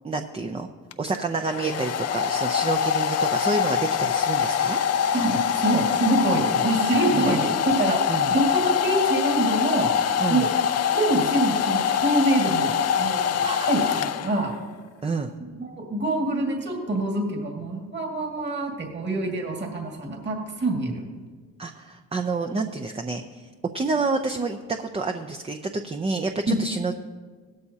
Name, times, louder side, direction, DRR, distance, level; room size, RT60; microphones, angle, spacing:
voice 1, 0.0-0.7 1.0-4.8 6.5-6.6 7.1-7.3 8.1-8.3 10.2-10.5 13.4-14.0 15.0-15.3 21.6-23.4 23.7-27.0, right 3 dB, 20° right, 5 dB, 0.6 m, -29 dB
Domestic sounds home sounds, 0.9-14.6, left 8 dB, 55° left, 0.6 m, -24 dB
voice 2, 5.1-8.0 8.3-9.9 10.3-10.5 10.9-13.4 13.7-14.5 15.6-21.0 26.5-26.6, right 2 dB, 35° right, 1 dB, 2.1 m, -25 dB
16.5 x 12.5 x 2.8 m, 1.5 s
cardioid pair, 90°, 30 cm